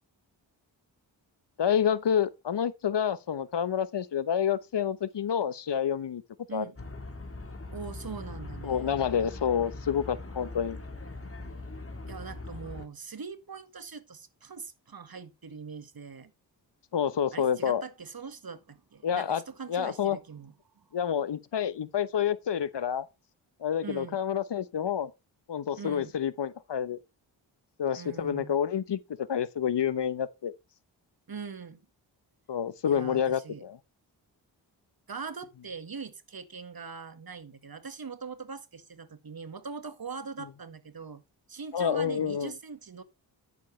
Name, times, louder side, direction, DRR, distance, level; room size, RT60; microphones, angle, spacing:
voice 1, 1.6-6.2 6.5-6.6 8.6-10.8 16.9-17.8 19.0-19.4 19.7-20.2 20.9-23.1 23.6-25.1 25.5-27.0 27.8-29.0 29.3-30.5 32.5-33.8 41.7-42.5, left 8 dB, 60° left, 1.0 m, -28 dB
sound 1, 6.8-12.9, left 2 dB, 30° left, 2.5 m, -41 dB
voice 2, 7.7-9.0 12.1-16.3 17.3-20.9 23.8-24.2 25.8-26.1 27.9-28.6 31.3-31.8 32.8-33.7 35.1-41.2 41.5-43.0, right 5 dB, 50° right, 1.8 m, -42 dB
10.5 x 9.3 x 3.3 m
cardioid pair, 40°, 47 cm